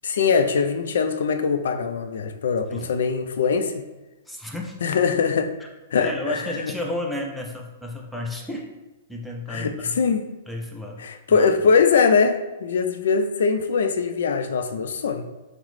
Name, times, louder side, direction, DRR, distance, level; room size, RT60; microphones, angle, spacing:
voice 1, 0.0-3.8 4.8-5.5 5.9-6.7 9.5-10.3 11.0-15.3, left 5 dB, 85° left, 7 dB, 0.4 m, -22 dB
voice 2, 4.3-4.8 6.0-8.7 9.1-10.0 10.5-11.0 11.3-11.5, left 1 dB, ahead, -1 dB, 0.3 m, -32 dB
5.8 x 2.0 x 3.1 m, 1.1 s
hypercardioid pair, 175°, 0 cm